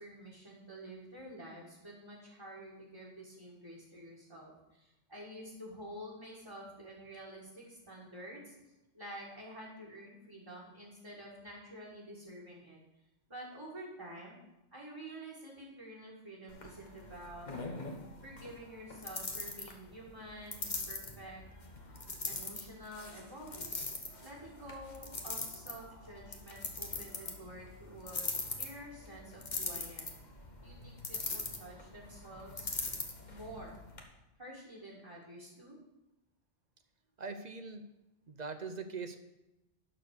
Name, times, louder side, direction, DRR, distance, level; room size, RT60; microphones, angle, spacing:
voice 1, 0.0-8.5 8.9-12.8 13.3-14.4 14.7-17.5 18.2-21.4 22.3-23.8 24.2-30.1 30.6-32.7 33.3-33.8 34.4-35.8, right 1 dB, 25° right, -4 dB, 2.1 m, -49 dB
sound 1, 16.5-34.0, left 3 dB, 40° left, 1.3 m, -42 dB
voice 2, 37.2-37.8 38.3-39.2, right 4 dB, 45° right, 8 dB, 0.7 m, -41 dB
12.0 x 4.6 x 6.6 m, 0.97 s
omnidirectional pair, 1.1 m